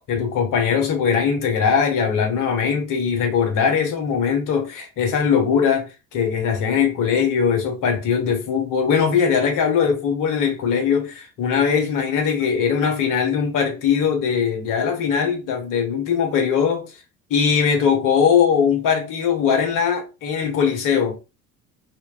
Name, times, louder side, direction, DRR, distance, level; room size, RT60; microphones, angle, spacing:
voice 1, 0.1-16.9 17.3-21.2, left 6 dB, 45° left, 1.1 m, -20 dB
4.4 x 2.2 x 2.5 m
figure-of-eight pair, 60°, 46 cm